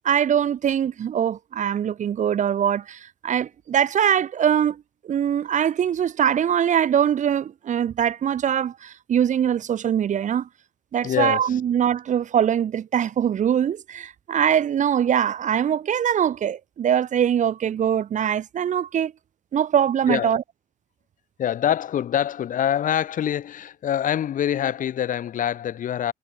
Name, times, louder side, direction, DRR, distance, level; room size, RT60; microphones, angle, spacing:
voice 1, 0.0-10.5 10.9-19.1 19.5-20.4, right 9 dB, 45° right, 1.5 m, -22 dB
voice 2, 11.0-11.6 20.1-20.4 21.4-26.1, left 10 dB, 50° left, 1.8 m, -25 dB
cardioid pair, 110°, 17 cm